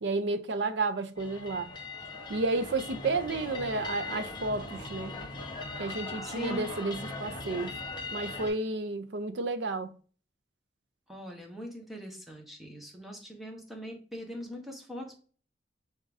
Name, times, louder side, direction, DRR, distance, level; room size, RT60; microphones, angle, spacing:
voice 1, 0.0-1.7 2.3-5.2 5.8-7.8 8.1-9.9, right 3 dB, 75° right, 0.6 m, -31 dB
sound 1, 1.2-8.5, left 3 dB, 25° left, 1.0 m, -40 dB
voice 2, 6.2-6.7 11.1-15.2, equal, ahead, 1.1 m, -41 dB
5.2 x 3.6 x 2.5 m
head